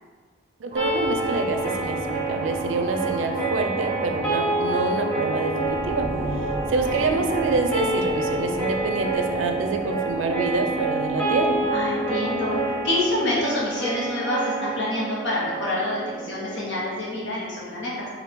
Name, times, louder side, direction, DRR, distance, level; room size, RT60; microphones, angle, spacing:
voice 1, 0.6-6.1 6.7-11.6, right 3 dB, 85° right, 5 dB, 0.5 m, -26 dB
sound 1, 0.7-14.9, right 2 dB, 35° right, 0.6 m, -33 dB
sound 2, 0.8-16.8, right 2 dB, 5° left, 1.1 m, -28 dB
voice 2, 11.7-18.1, left 1 dB, 65° left, -5 dB, 1.2 m, -27 dB
4.2 x 2.7 x 4.4 m, 1.6 s
head